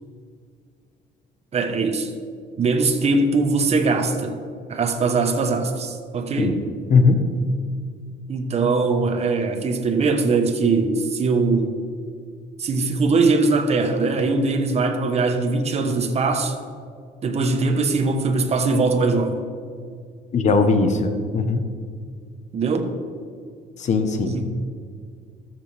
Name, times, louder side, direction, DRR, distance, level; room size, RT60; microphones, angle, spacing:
voice 1, 1.5-2.1 2.6-4.4 4.7-6.6 8.3-11.8 12.6-16.5 17.2-19.4 22.5-22.9 24.2-24.4, right 3 dB, 40° right, 5 dB, 1.1 m, -21 dB
voice 2, 6.9-7.2 20.3-21.6 23.8-24.3, left 4 dB, 45° left, 8 dB, 1.0 m, -19 dB
13.0 x 7.0 x 3.4 m, 2.1 s
cardioid pair, 110°, 17 cm